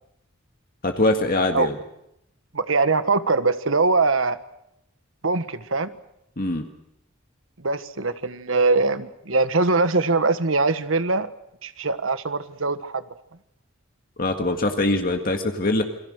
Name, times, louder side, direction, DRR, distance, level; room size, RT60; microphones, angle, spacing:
voice 1, 0.8-1.8 6.4-6.7 14.2-15.8, left 2 dB, 45° left, 4 dB, 1.9 m, -22 dB
voice 2, 2.5-4.4 5.2-5.9 7.6-11.3 11.6-13.0, right 3 dB, 85° right, 12 dB, 1.4 m, -22 dB
28.5 x 22.5 x 6.5 m, 0.81 s
head